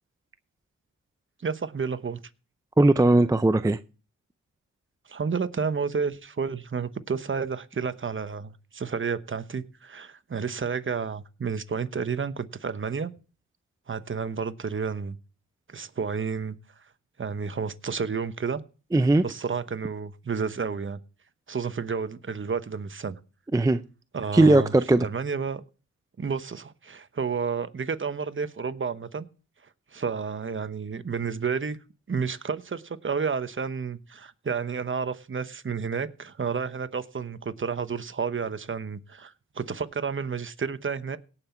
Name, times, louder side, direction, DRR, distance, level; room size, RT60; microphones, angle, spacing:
voice 1, 1.4-2.2 5.1-13.1 13.9-15.2 15.7-16.6 17.2-18.6 19.2-21.0 21.5-23.2 24.1-24.7 25.0-25.6 26.2-29.3 29.9-31.8 32.1-41.2, right 5 dB, 35° right, 1.0 m, -31 dB
voice 2, 2.8-3.8 18.9-19.2 23.5-23.8 24.3-25.1, right 2 dB, 10° right, 0.5 m, -19 dB
17.5 x 5.9 x 4.4 m
cardioid pair, 60°, 34 cm